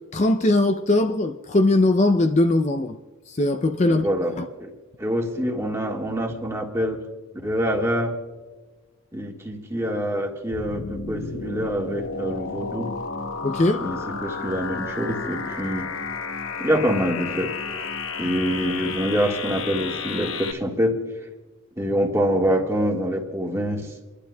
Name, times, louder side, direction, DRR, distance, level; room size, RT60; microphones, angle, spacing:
voice 1, 0.1-3.0 3.3-4.1 4.4-4.5 13.4-13.9, left 2 dB, 30° left, 0.4 m, -20 dB
voice 2, 3.8-4.7 5.0-7.0 7.4-8.2 9.1-12.9 13.8-15.9 16.6-17.5 18.2-21.0 21.8-23.9, equal, 15° right, 1.6 m, -25 dB
sound 1, 10.5-20.5, left 4 dB, 75° left, 0.9 m, -32 dB
29.0 x 11.5 x 2.2 m
head